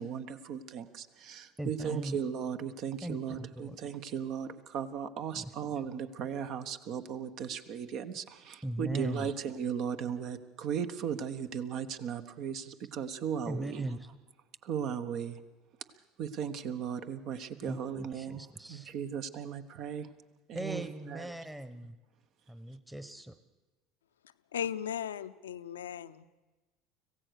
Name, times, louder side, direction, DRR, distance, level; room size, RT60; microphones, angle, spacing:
voice 1, 0.0-13.9 14.6-15.4 16.2-18.4 18.7-20.1 20.5-21.3, right 8 dB, 55° right, 10 dB, 1.3 m, -37 dB
voice 2, 1.6-2.2 3.0-4.0 5.3-5.5 8.6-9.3 13.5-14.2 17.6-18.9 20.5-22.0 22.5-23.4, right 1 dB, 5° right, 11 dB, 1.2 m, -39 dB
voice 3, 24.5-26.3, left 9 dB, 80° left, 12 dB, 0.6 m, -37 dB
25.5 x 16.0 x 6.6 m, 1.1 s
hypercardioid pair, 70°, 0 cm